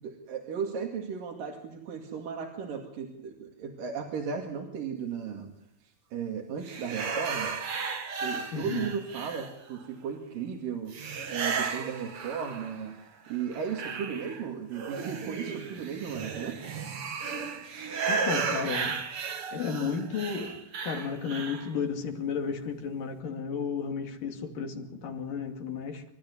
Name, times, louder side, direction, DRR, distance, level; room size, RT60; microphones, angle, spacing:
voice 1, 0.0-5.5 5.8-7.5 8.2-11.0 11.3-13.0 13.3-16.6, right 6 dB, 70° right, 3.9 m, -35 dB
sound 1, 6.6-9.8 10.9-12.9 13.3-21.7, right 5 dB, 45° right, 2.4 m, -34 dB
voice 2, 8.5-8.9 18.1-19.0 19.5-26.0, left 6 dB, 70° left, 4.2 m, -33 dB
27.5 x 13.5 x 9.9 m
omnidirectional pair, 4.1 m